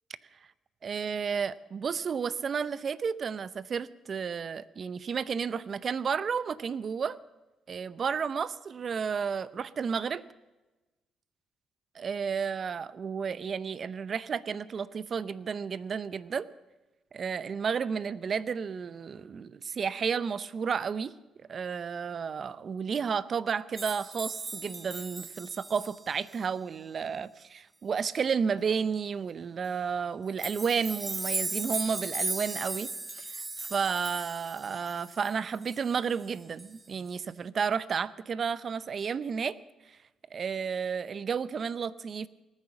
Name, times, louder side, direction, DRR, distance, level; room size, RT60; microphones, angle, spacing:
voice 1, 0.8-7.2 7.7-10.2 11.9-16.5 17.1-21.1 21.5-32.9 33.1-39.6 39.9-40.0 40.3-42.3, right 6 dB, 45° right, 18 dB, 0.6 m, -32 dB
sound 1, 23.8-26.3 30.4-36.3 36.6-36.8 37.1-37.2, right 2 dB, 20° right, 0.9 m, -37 dB
18.5 x 9.8 x 7.1 m, 1.1 s
cardioid pair, 90°, 0 cm